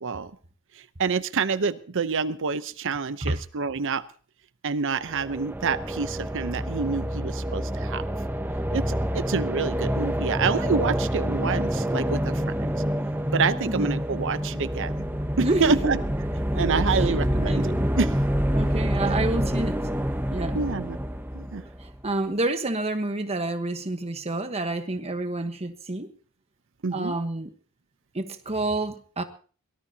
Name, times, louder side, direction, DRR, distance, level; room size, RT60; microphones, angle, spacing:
voice 1, 1.0-4.0 4.6-8.0 8.7-12.7 13.3-14.9 15.4-16.0 16.5-18.1 19.0-19.3 20.5-21.0 21.3-21.6 26.8-27.1, right 5 dB, 60° right, 0.8 m, -27 dB
sound 1, 5.0-22.0, equal, 10° right, 0.9 m, -27 dB
voice 2, 15.4-16.0 16.8-17.8 18.5-19.8 20.3-20.6 21.8-26.1 26.9-27.5 28.1-29.2, right 2 dB, 30° right, 1.2 m, -29 dB
23.0 x 18.5 x 2.8 m
head